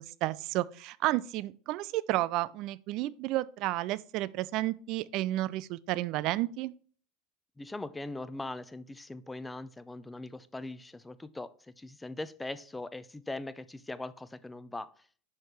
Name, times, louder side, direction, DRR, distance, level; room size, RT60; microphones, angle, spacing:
voice 1, 0.0-6.7, right 16 dB, 50° right, 0.4 m, -31 dB
voice 2, 7.6-11.5 11.8-14.9, left 2 dB, 10° left, 0.5 m, -40 dB
5.7 x 5.2 x 4.5 m
figure-of-eight pair, 75°, 0 cm